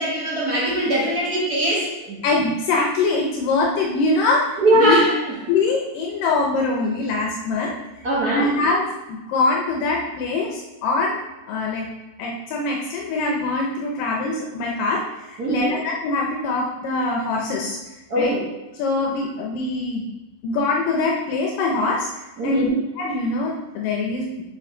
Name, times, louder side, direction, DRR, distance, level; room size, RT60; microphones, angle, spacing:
voice 1, 0.0-2.2 4.6-5.1 8.0-8.5 15.4-15.8 18.1-18.4 22.4-22.7, right 1 dB, 45° right, -6 dB, 1.3 m, -21 dB
voice 2, 2.2-5.0 5.5-7.8 8.2-11.2 11.5-11.9 12.2-17.8 18.2-18.3 18.7-20.1 20.4-22.7 23.0-24.3, left 3 dB, 80° left, -1 dB, 2.3 m, -23 dB
7.1 x 5.5 x 3.8 m, 1.0 s
omnidirectional pair, 4.0 m